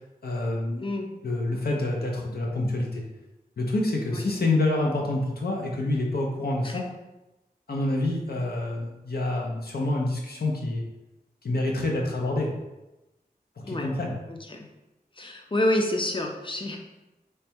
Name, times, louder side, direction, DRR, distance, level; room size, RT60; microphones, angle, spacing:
voice 1, 0.2-0.9 1.2-3.0 3.6-6.8 7.7-10.8 11.4-12.5 13.7-14.2, left 2 dB, 75° left, -1 dB, 0.7 m, -27 dB
voice 2, 0.8-1.1 4.1-4.3 6.6-6.9 13.6-13.9 14.3-14.7 15.2-16.8, left 1 dB, 30° left, 2 dB, 0.6 m, -28 dB
3.3 x 2.2 x 4.3 m, 1.0 s
wide cardioid pair, 55°, 16 cm